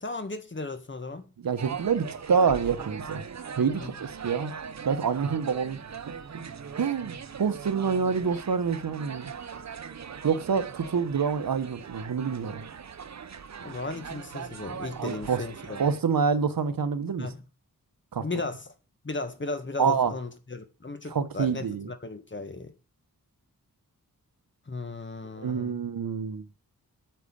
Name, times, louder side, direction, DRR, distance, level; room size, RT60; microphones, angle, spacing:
voice 1, 0.0-1.3 3.8-3.9 13.6-15.8 17.2-17.4 18.2-18.7 19.0-22.7 24.7-25.8, left 3 dB, 35° left, 1.7 m, -36 dB
voice 2, 1.4-3.2 3.6-4.5 4.8-5.8 6.8-9.3 10.2-12.6 15.0-15.4 15.8-17.3 18.1-18.2 19.8-20.1 21.1-21.9 25.4-26.5, right 6 dB, 75° right, 1.2 m, -27 dB
sound 1, 1.6-16.0, right 6 dB, 50° right, 0.8 m, -40 dB
9.2 x 6.5 x 8.6 m
wide cardioid pair, 95°, 35 cm